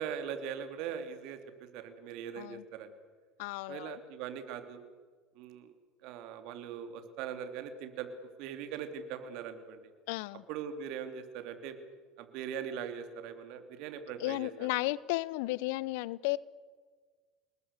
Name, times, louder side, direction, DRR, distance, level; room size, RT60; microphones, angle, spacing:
voice 1, 0.0-2.9 3.7-4.8 5.3-5.7 6.0-9.8 10.5-11.8 12.2-14.7, right 8 dB, 60° right, 8 dB, 2.9 m, -41 dB
voice 2, 3.4-4.0 10.1-10.4 14.2-16.4, left 20 dB, 65° left, 22 dB, 0.7 m, -34 dB
28.0 x 20.5 x 6.7 m, 1.5 s
hypercardioid pair, 70°, 0 cm